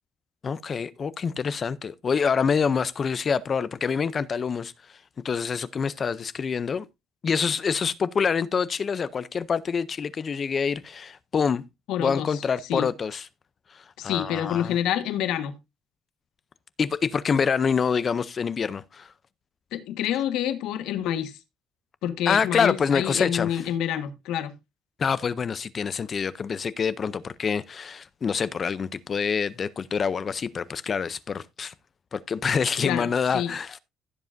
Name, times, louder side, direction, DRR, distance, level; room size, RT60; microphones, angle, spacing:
voice 1, 0.4-4.7 5.2-6.9 7.2-11.6 12.0-13.2 13.7-14.8 16.8-19.1 22.3-23.6 25.0-31.7 32.1-33.8, left 6 dB, 30° left, 0.5 m, -26 dB
voice 2, 11.9-12.4 12.7-12.9 14.0-15.5 19.7-21.4 22.0-24.5 32.8-33.5, left 10 dB, 85° left, 1.4 m, -28 dB
15.5 x 7.5 x 2.6 m
cardioid pair, 145°, 0 cm